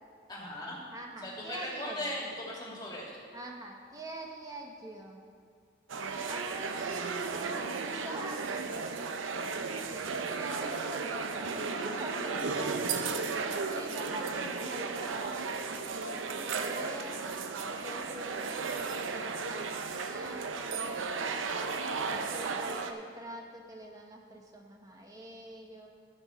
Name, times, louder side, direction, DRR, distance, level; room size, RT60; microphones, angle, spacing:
voice 1, 0.3-0.8 1.2-3.2, left 1 dB, 20° left, -4 dB, 2.1 m, -38 dB
voice 2, 0.9-2.1 3.3-5.2 6.2-8.5 10.2-13.2 13.6-15.4 16.3-17.3 17.7-20.9 21.8-25.9, right 1 dB, 20° right, 1 dB, 1.1 m, -44 dB
sound 1, 5.9-22.9, right 4 dB, 85° right, 0.7 m, -35 dB
13.5 x 6.2 x 5.5 m, 2.1 s
head